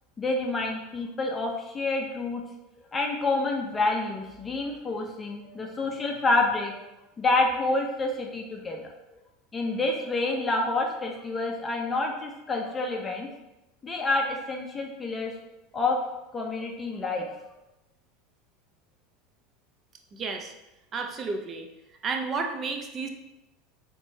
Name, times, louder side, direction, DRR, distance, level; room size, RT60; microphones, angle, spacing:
voice 1, 0.2-2.4 2.9-6.9 7.2-8.8 9.5-13.3 13.8-15.3 15.7-16.0 16.3-17.4, left 2 dB, 20° left, 1 dB, 0.6 m, -28 dB
voice 2, 20.1-20.5 20.9-21.7 22.0-23.1, right 4 dB, 35° right, 4 dB, 0.6 m, -31 dB
4.3 x 3.1 x 2.7 m, 0.95 s
hypercardioid pair, 95°, 0 cm